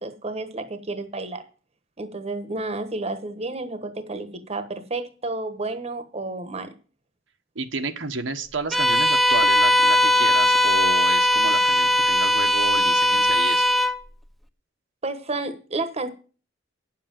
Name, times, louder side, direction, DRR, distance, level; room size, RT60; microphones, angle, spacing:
voice 1, 0.0-1.4 2.0-6.7 15.0-16.1, right 2 dB, 35° right, 1.2 m, -31 dB
voice 2, 7.5-13.7, right 3 dB, 80° right, 1.2 m, -31 dB
Bowed string instrument, 8.7-14.0, left 1 dB, ahead, 0.7 m, -19 dB
9.9 x 7.5 x 7.5 m
head